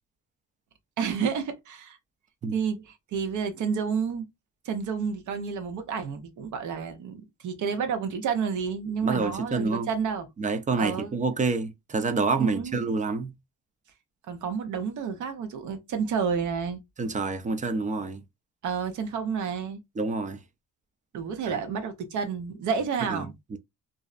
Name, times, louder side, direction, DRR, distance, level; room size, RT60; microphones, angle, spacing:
voice 1, 1.0-2.0 2.5-4.3 4.6-10.3 10.8-11.1 12.4-12.8 14.3-16.8 18.6-19.8 21.1-23.3, right 6 dB, 75° right, 0.7 m, -30 dB
voice 2, 9.0-9.9 10.4-13.3 17.0-18.2 20.0-20.4 21.5-21.6 23.1-23.2 23.5-23.6, right 4 dB, 25° right, 0.5 m, -27 dB
2.6 x 2.0 x 2.4 m
cardioid pair, 90°, 30 cm